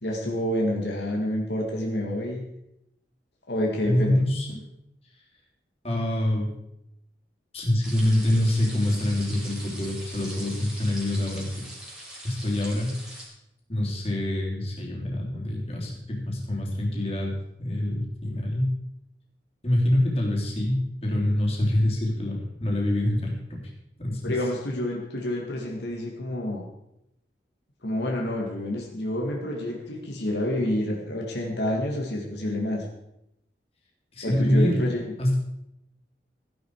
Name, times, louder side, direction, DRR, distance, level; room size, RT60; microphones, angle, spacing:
voice 1, 0.0-2.4 3.5-4.2 24.2-26.7 27.8-32.9 34.2-35.1, left 1 dB, 75° left, 0 dB, 2.1 m, -28 dB
voice 2, 3.9-4.6 5.8-6.5 7.5-11.7 12.2-13.1 13.7-17.3 17.6-18.7 19.6-23.6 24.0-24.4 34.1-34.9 35.2-35.4, left 1 dB, 35° left, -2 dB, 3.4 m, -25 dB
sound 1, 7.8-13.3, right 1 dB, 5° right, 3.2 m, -42 dB
15.0 x 10.5 x 4.8 m, 0.83 s
head